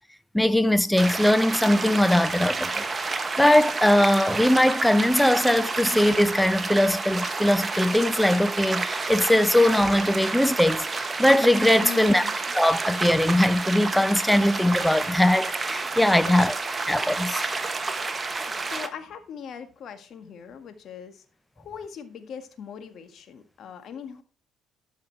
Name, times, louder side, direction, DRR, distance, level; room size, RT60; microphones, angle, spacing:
voice 1, 0.3-2.8 3.4-12.2 12.5-16.5 16.9-17.6, left 1 dB, 5° left, 0.7 m, -21 dB
sound 1, 1.0-18.9, right 3 dB, 25° right, 1.2 m, -30 dB
voice 2, 11.8-12.3 16.2-16.5 18.6-21.2 21.6-24.2, left 7 dB, 60° left, 1.7 m, -40 dB
13.0 x 5.6 x 4.6 m
supercardioid pair, 75°, 0 cm